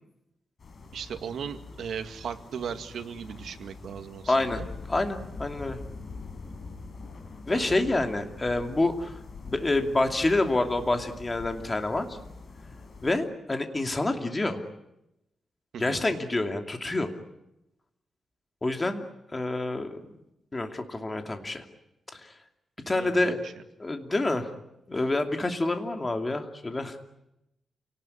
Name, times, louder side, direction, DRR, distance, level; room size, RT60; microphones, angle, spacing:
sound 1, 0.6-13.2, left 3 dB, 50° left, 4.5 m, -44 dB
voice 1, 0.9-4.7 7.5-7.9 8.2-8.3 15.7-16.0 22.9-23.5, right 7 dB, 80° right, 7 dB, 2.0 m, -37 dB
voice 2, 4.3-4.6 4.9-5.8 7.5-12.1 13.0-14.6 15.8-17.1 18.6-19.0 19.3-20.1 20.5-21.6 22.1-22.3 22.9-23.4 23.8-24.5 24.9-27.1, left 2 dB, 20° left, 5 dB, 2.7 m, -27 dB
29.0 x 18.5 x 10.0 m, 0.88 s
wide cardioid pair, 130°, 0 cm